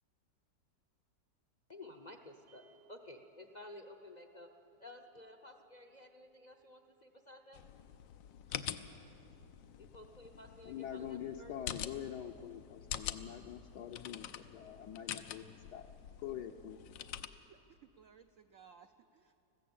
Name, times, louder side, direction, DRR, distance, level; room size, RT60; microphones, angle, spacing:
voice 1, 1.7-4.5 4.8-7.6 9.8-11.5, left 2 dB, 45° left, 5 dB, 0.5 m, -53 dB
sound 1, 2.5-12.8, right 3 dB, 90° right, 2.4 m, -72 dB
sound 2, 7.5-17.3, left 10 dB, 90° left, 1.4 m, -46 dB
voice 2, 10.6-15.9 16.2-16.8, left 10 dB, 70° left, 3 dB, 1.2 m, -45 dB
voice 3, 17.4-19.4, right 7 dB, 65° right, 7 dB, 0.8 m, -61 dB
20.5 x 15.0 x 8.6 m, 2.9 s
omnidirectional pair, 1.9 m